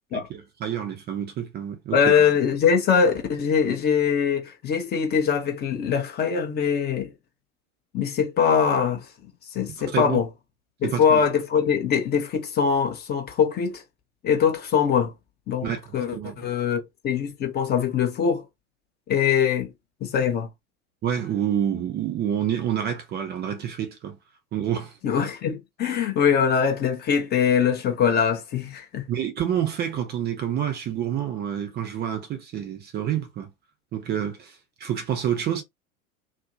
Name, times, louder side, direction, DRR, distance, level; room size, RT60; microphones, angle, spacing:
voice 1, 0.1-2.0 9.7-10.2 10.8-11.2 15.6-15.8 16.1-16.4 21.0-24.2 24.5-25.0 29.1-33.5 33.9-35.6, right 9 dB, 25° right, 0.6 m, -28 dB
voice 2, 1.9-7.1 7.9-9.1 9.5-10.3 10.8-13.8 14.2-15.1 15.5-18.4 19.1-19.7 20.0-20.5 25.0-29.0, left 7 dB, 25° left, 0.7 m, -22 dB
2.6 x 2.0 x 2.6 m
figure-of-eight pair, 85°, 42 cm